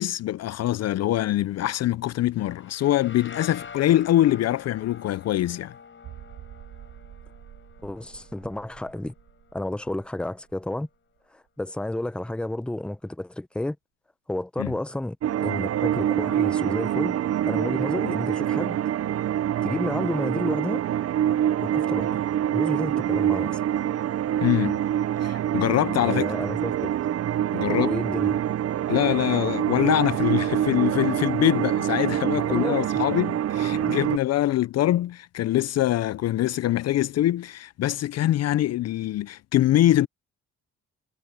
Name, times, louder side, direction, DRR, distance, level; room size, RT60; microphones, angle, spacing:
voice 1, 0.0-5.7 14.6-14.7 24.4-24.8 25.2-26.3 27.5-27.9 28.9-40.1, left 13 dB, 55° left, 0.5 m, -24 dB
sound 1, 2.4-10.0, left 6 dB, 40° left, 6.1 m, -46 dB
sound 2, 6.0-11.5 11.8-11.9 12.4-12.5, right 13 dB, 85° right, 6.3 m, -48 dB
voice 2, 7.8-9.1 9.5-10.9 11.3-13.8 14.3-17.2 17.4-18.8 19.6-20.8 21.6-22.2 22.5-23.6 26.0-26.9 27.7-28.4 32.4-32.8 33.7-33.9, left 1 dB, 5° left, 0.7 m, -31 dB
sound 3, 15.2-34.2, right 11 dB, 50° right, 0.6 m, -25 dB
cardioid pair, 90°, 30 cm